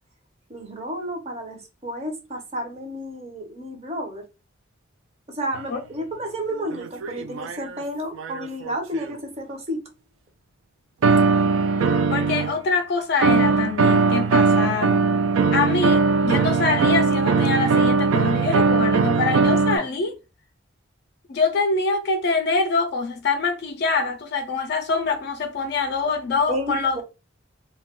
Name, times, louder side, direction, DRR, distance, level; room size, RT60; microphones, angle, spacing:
voice 1, 0.5-4.2 5.3-9.8 26.5-27.0, equal, 30° right, 0.6 m, -31 dB
sound 1, 5.5-5.6 6.7-7.8 8.2-9.2 11.0-12.6 13.2-19.8, right 4 dB, 80° right, 0.3 m, -20 dB
voice 2, 12.1-15.0 15.5-20.2 21.3-27.0, left 4 dB, 55° left, 0.3 m, -24 dB
2.2 x 2.2 x 3.5 m
head